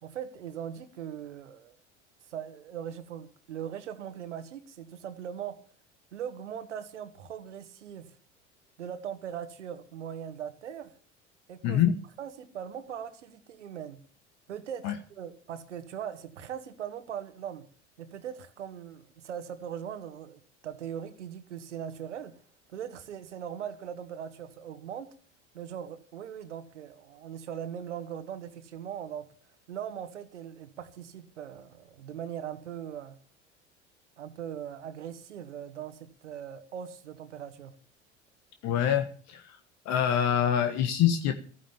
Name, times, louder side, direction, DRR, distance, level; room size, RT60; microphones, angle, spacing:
voice 1, 0.0-1.7 2.3-5.6 6.1-8.1 8.8-10.9 11.5-11.8 12.2-14.0 14.5-17.6 18.0-22.3 22.7-25.1 25.5-29.3 29.7-33.2 34.2-37.7, right 9 dB, 75° right, 11 dB, 1.7 m, -40 dB
voice 2, 11.6-11.9 14.8-15.0 38.6-39.6 39.8-41.3, left 9 dB, 50° left, 8 dB, 1.5 m, -25 dB
15.0 x 9.9 x 7.2 m, 0.42 s
figure-of-eight pair, 70°, 35 cm